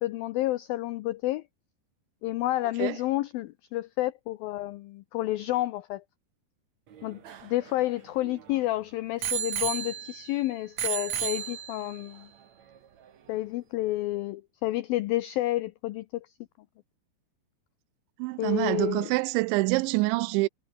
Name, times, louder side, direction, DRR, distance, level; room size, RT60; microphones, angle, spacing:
voice 1, 0.0-1.4 2.2-6.0 7.0-12.3 13.3-16.3 18.4-19.1, left 16 dB, 85° left, 2.0 m, -30 dB
Bicycle bell, 6.9-8.6 9.2-10.4 10.8-12.0 12.8-12.9, right 9 dB, 50° right, 2.6 m, -33 dB
voice 2, 18.2-20.5, right 23 dB, 90° right, 2.9 m, -26 dB
omnidirectional pair, 5.2 m